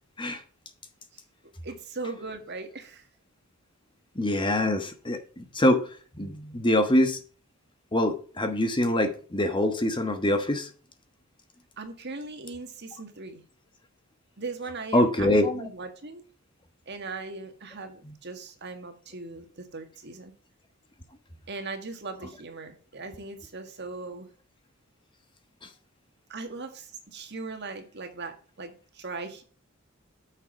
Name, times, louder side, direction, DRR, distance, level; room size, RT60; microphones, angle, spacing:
voice 1, 1.6-3.0 11.8-13.4 14.4-16.2 16.9-20.3 21.5-24.3 26.3-29.4, right 3 dB, 55° right, 1.8 m, -39 dB
voice 2, 4.2-5.8 6.2-7.2 7.9-10.7 14.9-15.6, left 1 dB, 25° left, 1.2 m, -24 dB
8.0 x 6.5 x 5.1 m
head